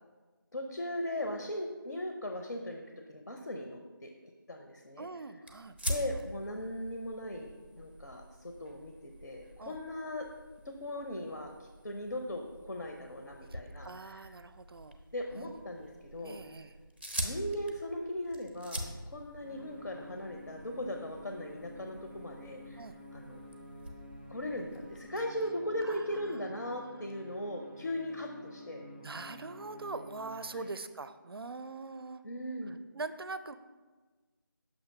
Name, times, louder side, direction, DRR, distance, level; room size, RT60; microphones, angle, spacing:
voice 1, 0.5-2.8 3.1-4.1 4.5-5.1 5.9-10.3 10.6-14.3 15.1-16.4 17.2-22.8 23.1-23.5 24.3-28.9 30.5-30.7 32.2-32.8, left 1 dB, 70° left, 3 dB, 0.7 m, -38 dB
voice 2, 5.0-5.8 9.6-9.8 13.5-15.0 15.3-15.5 16.2-16.7 22.8-23.0 25.8-26.5 26.8-27.0 29.0-32.2 32.7-33.6, right 3 dB, 90° right, 12 dB, 0.4 m, -43 dB
sound 1, 5.4-25.1, equal, 30° right, 0.5 m, -45 dB
sound 2, 19.4-30.4, left 1 dB, 25° left, 0.5 m, -51 dB
6.3 x 2.8 x 5.6 m, 1.3 s
figure-of-eight pair, 180°, 12 cm